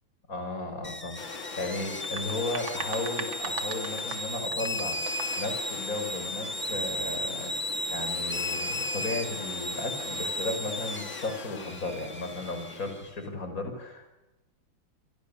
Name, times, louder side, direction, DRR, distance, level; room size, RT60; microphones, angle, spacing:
voice 1, 0.3-1.2 1.6-14.1, left 2 dB, 40° left, 6 dB, 5.9 m, -35 dB
sound 1, 0.8-13.1, left 1 dB, 5° left, 1.2 m, -35 dB
sound 2, 1.2-13.2, left 5 dB, 70° left, 2.7 m, -42 dB
sound 3, 1.9-5.5, right 5 dB, 70° right, 3.2 m, -40 dB
29.0 x 25.5 x 7.2 m, 1.0 s
omnidirectional pair, 2.2 m